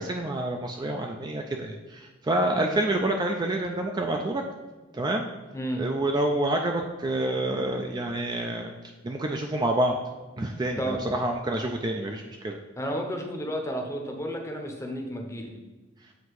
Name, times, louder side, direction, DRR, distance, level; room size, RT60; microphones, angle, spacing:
voice 1, 0.0-4.4 4.9-5.3 5.8-8.7 9.0-9.9 10.4-12.6, right 1 dB, 20° right, 3 dB, 0.3 m, -28 dB
voice 2, 5.5-5.8 10.8-11.0 12.8-15.5, equal, 15° left, 2 dB, 0.7 m, -32 dB
7.9 x 2.7 x 4.6 m, 1.3 s
head